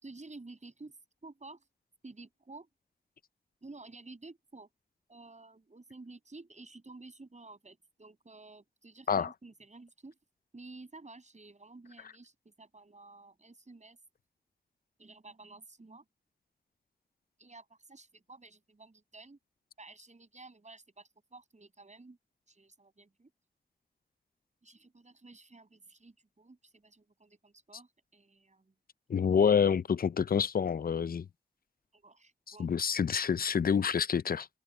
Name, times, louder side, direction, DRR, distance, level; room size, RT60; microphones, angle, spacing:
voice 1, 0.0-1.0 1.2-1.7 2.0-2.7 3.6-4.7 5.1-10.2 10.5-14.0 15.0-16.1 17.4-19.4 19.8-22.2 22.5-23.3 24.6-28.7 31.9-32.7, right 3 dB, 45° right, 6.8 m, -52 dB
voice 2, 29.1-31.3 32.6-34.5, left 7 dB, 60° left, 0.4 m, -27 dB
wide cardioid pair, 85°, 17 cm